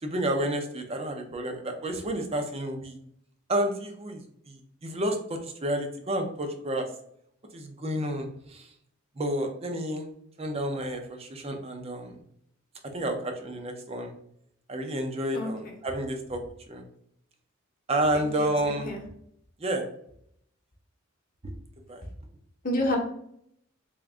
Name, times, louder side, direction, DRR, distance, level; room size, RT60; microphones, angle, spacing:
voice 1, 0.0-3.0 3.5-4.2 4.5-6.8 7.5-8.7 9.2-10.1 10.4-12.2 12.9-14.1 14.7-16.4 16.7-16.8 17.9-18.9 19.6-19.9 21.4-21.5 21.9-22.0, right 1 dB, 30° right, 4 dB, 0.5 m, -30 dB
voice 2, 15.3-15.7 18.1-19.0 22.6-23.0, left 1 dB, 40° left, 1 dB, 0.9 m, -30 dB
3.5 x 2.5 x 3.5 m, 0.71 s
head